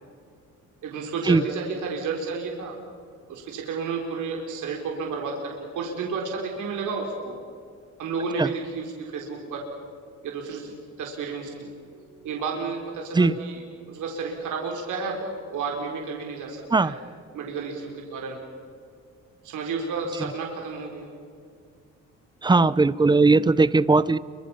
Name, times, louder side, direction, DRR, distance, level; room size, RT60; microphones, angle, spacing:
voice 1, 0.8-2.8 3.3-7.3 8.0-9.7 10.2-10.7 11.0-11.7 11.9-13.6 13.9-17.0 17.3-18.4 19.4-21.1, right 4 dB, 80° right, 0 dB, 4.0 m, -31 dB
voice 2, 22.4-24.2, right 3 dB, 15° right, 17 dB, 0.7 m, -18 dB
29.5 x 25.0 x 5.7 m, 2.3 s
cardioid pair, 90°, 30 cm